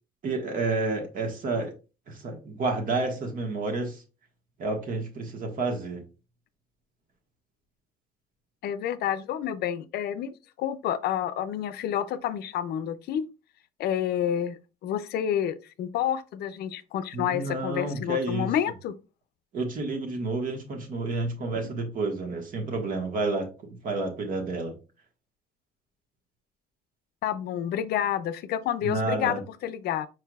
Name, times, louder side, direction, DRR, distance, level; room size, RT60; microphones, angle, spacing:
voice 1, 0.2-1.7 2.1-4.0 4.6-6.0 17.1-18.5 19.5-23.5 23.8-24.8 28.8-29.4, right 3 dB, 55° right, 1.5 m, -30 dB
voice 2, 8.6-13.3 13.8-18.9 27.2-30.1, left 10 dB, 70° left, 0.5 m, -29 dB
4.8 x 4.6 x 2.3 m
cardioid pair, 110°, 17 cm